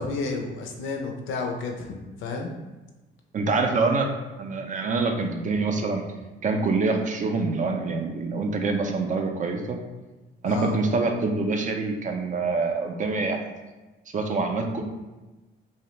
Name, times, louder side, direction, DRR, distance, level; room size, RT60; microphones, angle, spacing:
voice 1, 0.0-2.5 10.4-10.7, left 3 dB, 80° left, 2 dB, 0.5 m, -31 dB
voice 2, 3.3-4.1 4.4-6.0 6.4-9.8 10.4-13.4 14.1-14.8, right 3 dB, 40° right, 4 dB, 0.4 m, -25 dB
2.6 x 2.0 x 3.0 m, 1.1 s
cardioid pair, 90°, 20 cm